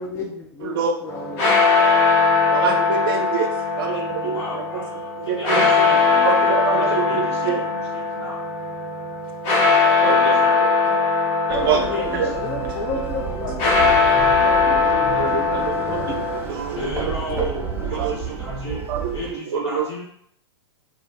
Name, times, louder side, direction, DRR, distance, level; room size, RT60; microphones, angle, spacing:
voice 1, 0.0-1.5 11.5-16.2, left 3 dB, 20° left, 0 dB, 0.3 m, -32 dB
voice 2, 0.6-1.0 2.5-3.5 3.8-4.4 4.7-4.8 5.3-5.7 6.2-7.6 10.0-11.0 11.5-11.8 12.1-12.3 15.1-16.9 17.4-17.5 17.9-18.4 18.9-19.9, right 7 dB, 55° right, 4 dB, 0.6 m, -26 dB
sound 1, 1.1-16.4, left 4 dB, 40° left, 1.2 m, -20 dB
voice 3, 3.8-8.4 10.0-10.6 11.6-12.4 16.7-18.8 19.1-20.0, left 2 dB, 75° left, -8 dB, 1.1 m, -34 dB
sound 2, 11.5-19.3, right 5 dB, 15° right, 0.6 m, -31 dB
2.4 x 2.3 x 3.0 m, 0.66 s
figure-of-eight pair, 105°, 14 cm